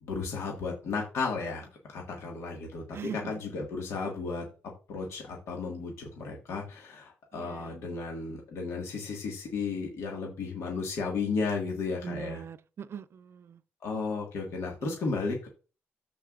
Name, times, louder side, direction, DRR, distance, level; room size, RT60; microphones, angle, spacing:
voice 1, 0.0-2.8 3.1-4.5 4.9-12.4 13.8-15.5, left 4 dB, 75° left, 1.9 m, -34 dB
voice 2, 7.3-7.7 12.0-13.6, right 8 dB, 60° right, 0.5 m, -41 dB
14.0 x 4.7 x 2.5 m
cardioid pair, 70°, 5 cm